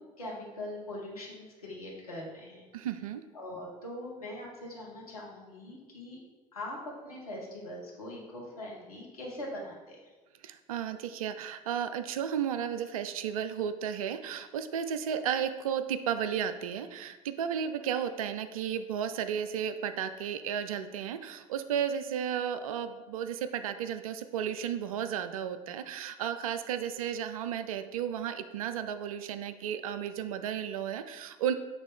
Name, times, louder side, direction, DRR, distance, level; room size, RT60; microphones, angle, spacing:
voice 1, 0.0-2.6 3.3-6.2 6.5-10.0, left 1 dB, 80° left, -3 dB, 1.4 m, -42 dB
voice 2, 2.7-3.2 10.4-31.5, right 8 dB, 70° right, 10 dB, 0.4 m, -33 dB
6.8 x 3.4 x 4.2 m, 1.3 s
figure-of-eight pair, 55°, 18 cm